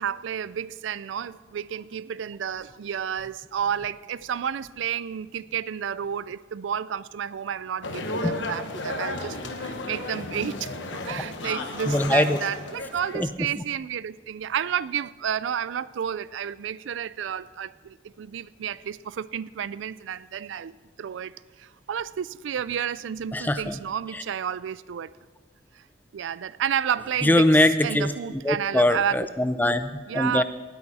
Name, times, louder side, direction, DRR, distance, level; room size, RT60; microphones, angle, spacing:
voice 1, 0.0-10.8 11.0-21.3 21.6-25.1 25.7-25.8 26.1-27.5 27.8-29.3 30.1-30.4, right 8 dB, 75° right, 0.4 m, -31 dB
sound 1, 7.8-13.2, left 2 dB, 75° left, 1.1 m, -33 dB
voice 2, 11.6-12.4 13.1-13.3 13.6-13.7 23.3-23.8 24.1-24.2 27.2-30.4, left 1 dB, 10° left, 0.4 m, -22 dB
18.5 x 8.7 x 4.2 m
head